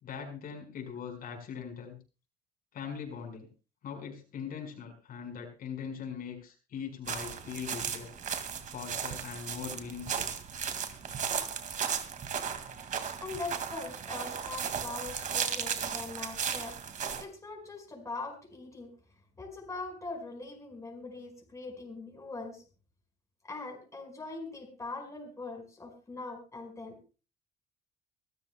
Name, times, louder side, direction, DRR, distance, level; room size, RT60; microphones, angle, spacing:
voice 1, 0.0-2.0 2.7-3.5 3.8-8.1 8.7-10.3, left 7 dB, 60° left, 3 dB, 4.9 m, -41 dB
sound 1, 7.1-17.2, right 7 dB, 50° right, 2.0 m, -35 dB
voice 2, 13.2-18.9 19.4-22.6 23.5-27.2, left 3 dB, 20° left, 2 dB, 5.0 m, -42 dB
25.0 x 13.5 x 2.2 m, 0.33 s
cardioid pair, 110°, 17 cm